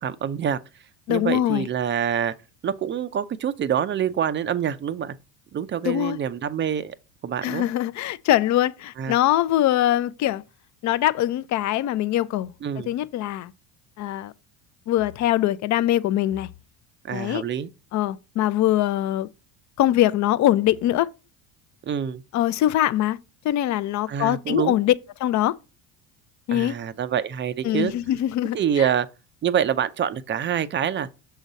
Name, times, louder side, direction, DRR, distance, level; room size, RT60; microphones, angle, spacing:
voice 1, 0.0-0.6 1.1-2.3 2.6-5.2 5.5-6.9 7.2-7.6 9.0-9.1 12.6-12.9 17.0-17.7 21.9-22.2 24.1-24.7 26.5-27.9 28.5-29.1 29.4-31.1, right 9 dB, 30° right, 0.4 m, -26 dB
voice 2, 1.1-1.7 5.8-6.2 7.4-10.4 10.8-12.5 12.9-13.5 14.0-14.3 14.9-16.5 17.1-17.4 17.9-19.3 19.8-21.1 22.3-23.2 23.4-24.9 25.2-25.6 26.5-26.7 27.6-28.9, left 13 dB, 45° left, 0.5 m, -22 dB
6.3 x 3.9 x 4.0 m
supercardioid pair, 80°, 43 cm